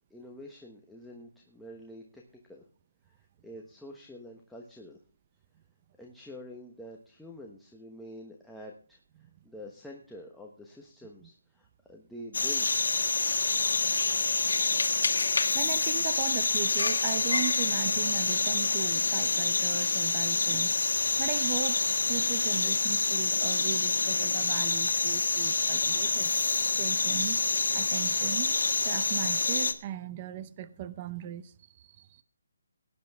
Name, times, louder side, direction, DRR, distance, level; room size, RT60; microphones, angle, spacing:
voice 1, 0.1-2.2 2.5-2.6 3.1-5.0 6.0-12.7, left 1 dB, ahead, 1.1 m, -47 dB
sound 1, 12.3-29.7, left 4 dB, 75° left, 1.5 m, -27 dB
voice 2, 15.5-26.3 26.8-27.4 27.7-28.6 28.8-32.2, right 11 dB, 25° right, 0.7 m, -38 dB
18.0 x 10.5 x 3.5 m
hypercardioid pair, 165°, 0 cm